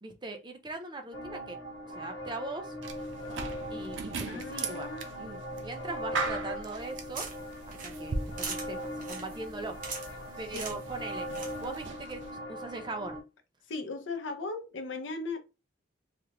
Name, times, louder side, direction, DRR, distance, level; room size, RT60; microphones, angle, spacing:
voice 1, 0.0-1.6 1.9-2.7 3.7-4.9 5.2-7.3 7.7-9.8 10.4-11.3 11.6-12.2 12.5-13.2, right 2 dB, 25° right, 0.5 m, -40 dB
sound 1, 1.1-13.2, equal, 60° left, 1.1 m, -40 dB
sound 2, 2.8-12.3, right 4 dB, 80° right, 0.5 m, -40 dB
voice 2, 4.2-5.1 10.5-10.8 13.7-15.4, left 3 dB, 85° left, 0.6 m, -37 dB
sound 3, 6.8-11.9, right 4 dB, 45° right, 0.8 m, -43 dB
3.3 x 2.4 x 2.9 m
head